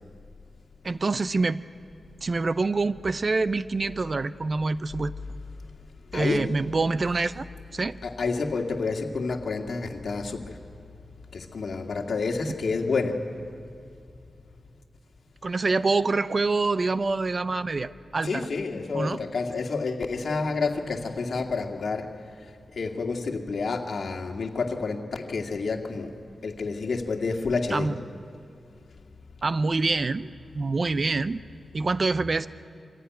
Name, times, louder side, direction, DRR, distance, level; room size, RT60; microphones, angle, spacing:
voice 1, 0.8-1.6 2.2-5.1 6.1-7.5 7.7-8.0 15.4-18.5 18.9-19.2 27.7-28.0 29.4-31.4 31.7-32.5, right 3 dB, 45° right, 15 dB, 0.6 m, -26 dB
voice 2, 6.1-6.5 8.0-10.6 11.3-13.2 18.2-26.2 26.4-27.9, left 4 dB, 65° left, 3 dB, 2.0 m, -29 dB
24.5 x 15.5 x 9.4 m, 2.4 s
cardioid pair, 75°, 0 cm